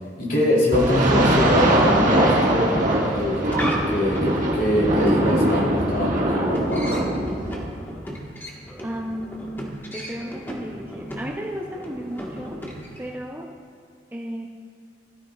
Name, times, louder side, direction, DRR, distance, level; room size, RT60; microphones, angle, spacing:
voice 1, 0.2-3.6 3.9-6.9, left 1 dB, 50° left, -4 dB, 3.2 m, -23 dB
sound 1, 0.7-7.7, right 1 dB, 45° right, 1.6 m, -21 dB
sound 2, 3.1-13.1, equal, 10° left, 1.4 m, -35 dB
voice 2, 8.8-12.6 13.0-13.5 14.1-14.5, equal, 10° right, 0 dB, 0.6 m, -34 dB
16.5 x 13.0 x 2.4 m, 2.3 s
head